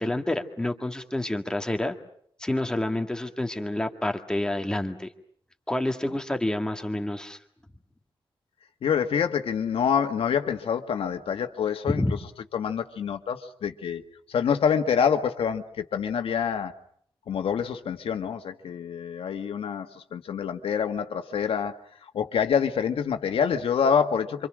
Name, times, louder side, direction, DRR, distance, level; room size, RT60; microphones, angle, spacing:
voice 1, 0.0-2.0 2.4-5.1 5.7-7.4 11.9-12.2, left 1 dB, 10° left, 5 dB, 2.0 m, -28 dB
voice 2, 8.8-12.0 12.5-14.0 14.3-16.8 17.3-24.5, left 7 dB, 90° left, 7 dB, 1.9 m, -26 dB
27.5 x 26.0 x 6.3 m, 0.64 s
wide cardioid pair, 125°, 9 cm